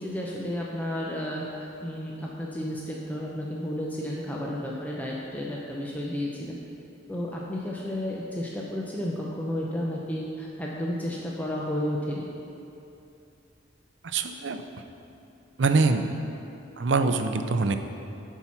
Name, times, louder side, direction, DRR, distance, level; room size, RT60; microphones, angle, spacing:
voice 1, 0.0-6.6 7.1-12.3, left 1 dB, 10° left, -4 dB, 0.6 m, -32 dB
voice 2, 14.0-14.6 15.6-16.2 16.8-17.8, right 3 dB, 70° right, 8 dB, 0.5 m, -24 dB
10.0 x 4.6 x 5.7 m, 2.7 s
head